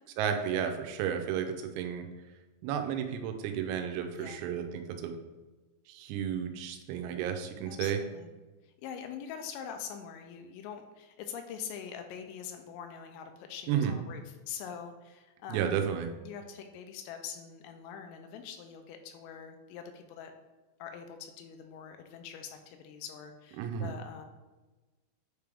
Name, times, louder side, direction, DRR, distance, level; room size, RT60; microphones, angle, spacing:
voice 1, 0.2-2.1 2.6-5.1 5.9-8.0 13.7-13.9 15.5-16.1 23.6-23.9, right 8 dB, 90° right, 5 dB, 3.3 m, -32 dB
voice 2, 7.7-8.3 8.6-15.9 16.2-20.3 20.8-24.3, left 7 dB, 85° left, 6 dB, 3.1 m, -44 dB
8.7 x 3.4 x 3.4 m, 1.2 s
omnidirectional pair, 6.0 m